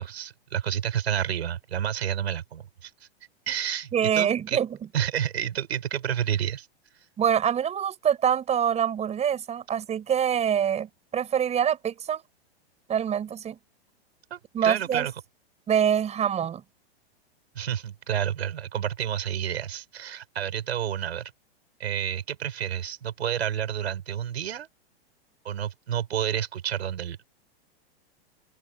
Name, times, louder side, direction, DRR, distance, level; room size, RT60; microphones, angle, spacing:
voice 1, 0.0-3.1 3.5-4.6 4.9-6.7 14.3-15.1 17.5-21.3 21.8-24.7 25.4-27.3, right 9 dB, 85° right, 6.9 m, -30 dB
voice 2, 3.9-4.7 7.2-12.2 12.9-13.6 14.5-15.1 15.7-16.6, right 9 dB, 20° right, 5.6 m, -25 dB
open air
hypercardioid pair, 135°, 31 cm